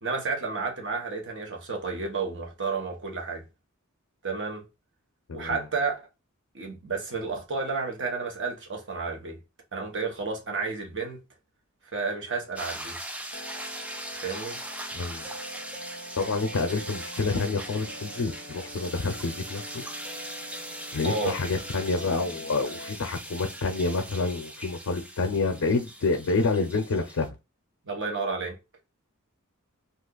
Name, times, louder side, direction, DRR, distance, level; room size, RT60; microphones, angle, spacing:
voice 1, 0.0-3.4 4.2-4.6 5.3-6.0 6.5-9.4 9.7-11.2 11.9-13.0 14.1-14.6 21.0-21.4 27.8-28.6, right 4 dB, 55° right, 1.0 m, -31 dB
voice 2, 5.3-5.6 14.9-15.2 16.2-19.8 20.9-27.3, left 3 dB, 70° left, 0.5 m, -28 dB
sound 1, 12.6-27.3, right 1 dB, 5° right, 0.3 m, -40 dB
sound 2, 13.3-22.9, equal, 35° right, 1.0 m, -44 dB
2.8 x 2.4 x 3.7 m
head